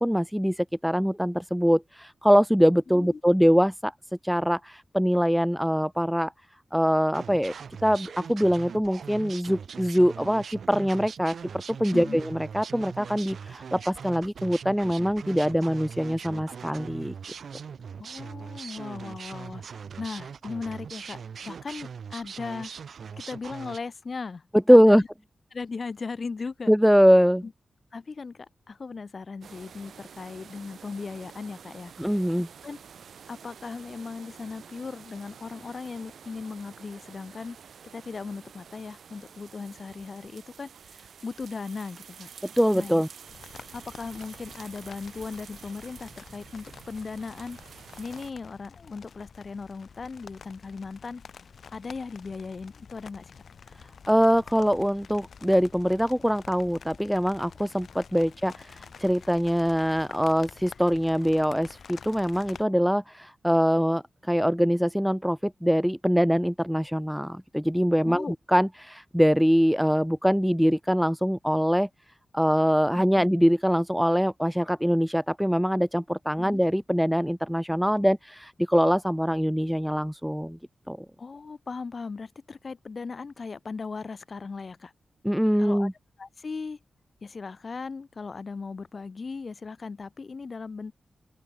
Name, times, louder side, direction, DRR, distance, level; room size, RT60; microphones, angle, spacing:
voice 1, 0.0-3.9 4.2-6.3 6.7-7.5 7.8-11.4 11.8-17.1 24.7-25.0 26.7-27.4 32.0-32.5 42.6-43.1 54.1-71.9 72.3-80.6 80.9-81.1 85.2-85.9, equal, ahead, 0.3 m, -23 dB
sound 1, 7.1-23.8, right 6 dB, 65° right, 4.7 m, -41 dB
voice 2, 18.0-22.7 23.2-25.1 25.5-26.7 27.4-27.5 27.9-31.9 32.6-32.8 33.3-37.6 37.9-42.3 42.7-43.0 43.7-47.6 48.0-51.2 51.7-53.3 68.0-68.3 72.9-73.3 76.4-76.6 81.2-84.9 85.6-85.9 86.2-86.8 87.2-90.9, left 4 dB, 40° left, 4.8 m, -38 dB
sound 2, 29.4-48.3, right 7 dB, 80° right, 3.9 m, -49 dB
sound 3, 43.3-62.6, left 6 dB, 60° left, 4.3 m, -49 dB
open air
wide cardioid pair, 155°, 0 cm